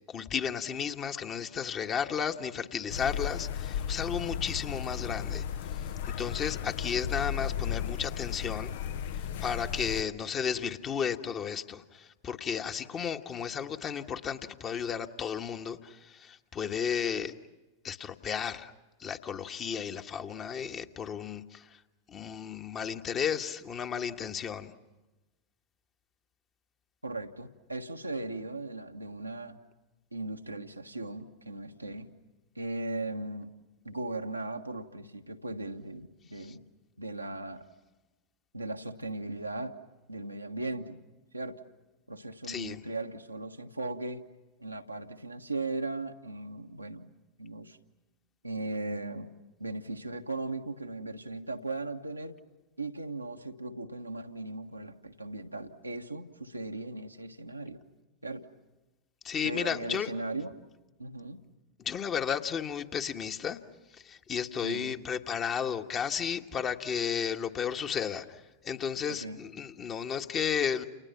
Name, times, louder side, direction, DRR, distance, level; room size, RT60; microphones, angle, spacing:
voice 1, 0.1-5.4 5.7-8.7 9.1-17.4 17.8-18.7 19.0-21.8 22.1-24.7 36.4-36.5 42.5-42.8 59.2-60.1 61.8-63.6 63.9-70.8, left 7 dB, 30° left, 6 dB, 1.5 m, -33 dB
sound 1, 2.9-10.0, left 8 dB, 55° left, 0.8 m, -35 dB
voice 2, 27.0-29.6 30.1-32.1 32.5-33.5 33.8-36.6 37.0-37.7 38.5-39.8 40.1-41.0 41.3-41.6 42.1-44.2 44.6-47.1 47.4-47.8 48.4-49.3 49.6-52.4 52.8-57.8 58.2-58.5 59.4-60.5 61.0-61.4 64.6-65.0 69.1-69.4, right 2 dB, 85° right, 3 dB, 1.5 m, -38 dB
30.0 x 29.5 x 5.9 m, 1.1 s
figure-of-eight pair, 90°, 0 cm